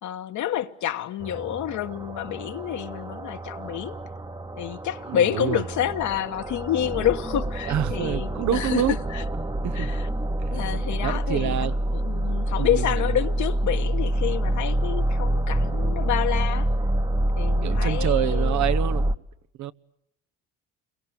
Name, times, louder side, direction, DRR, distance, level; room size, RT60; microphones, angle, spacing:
voice 1, 0.0-4.0 4.6-9.2 9.7-10.1 10.5-16.7 17.4-18.6, left 11 dB, 65° left, 1.4 m, -28 dB
sound 1, 1.2-19.2, right 1 dB, 15° right, 1.1 m, -27 dB
voice 2, 5.1-5.6 7.7-9.0 9.6-9.9 11.0-11.8 12.6-13.2 17.6-19.1 19.6-19.7, right 12 dB, 65° right, 0.9 m, -27 dB
29.0 x 23.0 x 7.8 m
supercardioid pair, 75°, 31 cm